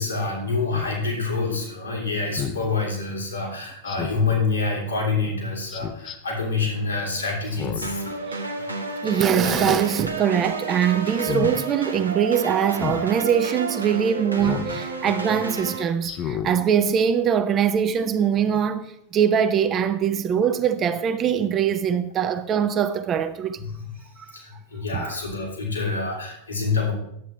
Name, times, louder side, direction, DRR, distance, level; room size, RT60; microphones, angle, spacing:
voice 1, 0.0-8.1 23.6-23.9 24.3-26.9, left 4 dB, 80° left, 3.0 m, -27 dB
Speech synthesizer, 0.7-0.9 2.4-2.6 3.9-4.3 5.7-6.2 7.5-8.0 8.4-8.5 9.3-9.8 10.2-10.5 11.1-11.5 12.8-13.0 14.4-14.7 15.2-15.3 16.0-16.5 17.0-17.1, left 9 dB, 35° left, 0.7 m, -31 dB
sound 1, 7.8-15.8, right 3 dB, 80° right, 1.0 m, -31 dB
voice 2, 9.0-23.6 24.9-25.1, right 8 dB, 30° right, 0.6 m, -22 dB
10.0 x 8.1 x 3.3 m
figure-of-eight pair, 90°, 0 cm